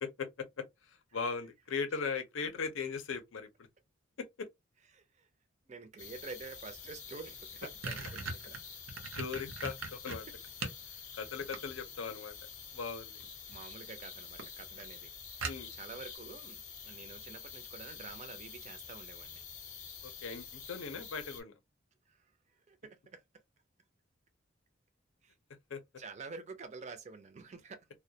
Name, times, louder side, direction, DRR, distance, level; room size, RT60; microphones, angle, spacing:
voice 1, 0.0-3.5 4.2-4.5 9.1-10.3 11.2-13.2 15.4-15.7 20.0-21.5 25.7-25.8, left 5 dB, 80° left, 0.5 m, -39 dB
voice 2, 4.9-5.3 5.7-8.6 13.5-15.1 15.7-19.4 22.1-23.2 25.2-25.3 26.0-27.9, right 4 dB, 35° right, 0.4 m, -48 dB
sound 1, 6.0-21.4, left 6 dB, 35° left, 0.6 m, -48 dB
sound 2, 7.0-7.1 7.4-10.8 11.2-12.1 13.2-13.6 14.0-14.1 14.4-14.5 14.8-14.9 15.4-16.0, right 4 dB, 85° right, 0.6 m, -40 dB
2.2 x 2.1 x 2.6 m
head